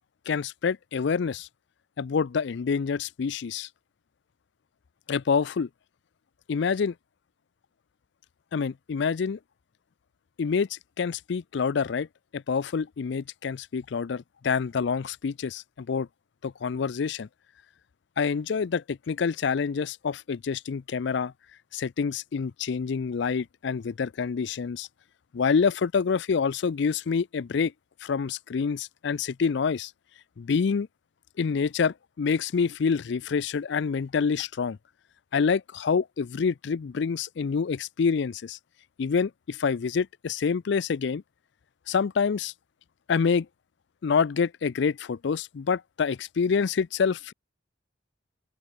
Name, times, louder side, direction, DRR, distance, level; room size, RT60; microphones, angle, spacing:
voice 1, 0.3-1.5 2.0-3.7 5.1-5.7 6.5-6.9 8.5-9.4 10.4-12.1 12.3-16.1 16.4-17.3 18.2-21.3 21.7-24.9 25.3-27.7 28.0-29.9 30.4-30.9 31.4-34.8 35.3-38.6 39.0-41.2 41.9-42.5 43.1-43.5 44.0-47.3, left 5 dB, 60° left, 0.4 m, -27 dB
open air
head